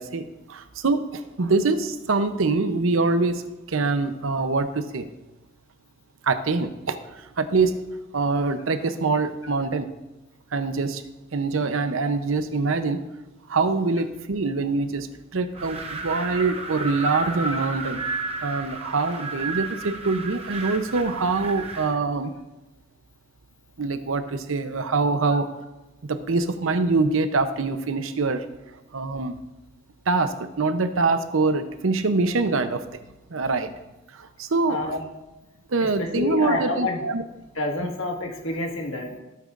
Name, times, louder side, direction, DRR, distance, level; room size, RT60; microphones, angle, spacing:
voice 1, 0.0-5.1 6.2-7.8 8.1-9.9 10.5-11.0 11.3-13.1 13.5-15.1 15.3-18.0 18.4-22.3 23.8-25.5 26.1-28.4 28.9-29.4 30.1-32.8 33.3-33.7 34.1-34.8 35.7-37.2, right 3 dB, 85° right, 10 dB, 0.7 m, -24 dB
Wind, 15.5-22.0, right 3 dB, 30° right, 0.8 m, -32 dB
voice 2, 34.7-35.0 35.8-37.0 37.5-39.2, left 2 dB, 80° left, 1 dB, 1.7 m, -28 dB
15.5 x 8.4 x 2.5 m, 1.0 s
head